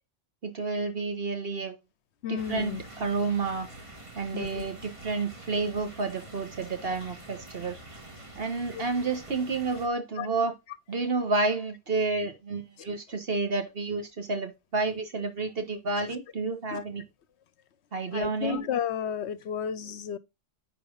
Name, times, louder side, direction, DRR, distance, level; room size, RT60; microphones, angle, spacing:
voice 1, 0.4-1.8 2.3-3.7 4.1-7.8 8.4-10.5 10.9-17.0 17.9-18.6, right 3 dB, 55° right, 1.5 m, -30 dB
voice 2, 2.2-2.8 4.3-4.7 8.8-8.9 10.2-10.3 16.7-16.8 18.1-20.2, left 8 dB, 70° left, 0.9 m, -32 dB
sound 1, 2.4-9.9, right 2 dB, 25° right, 1.7 m, -46 dB
10.0 x 4.2 x 3.8 m
omnidirectional pair, 1.2 m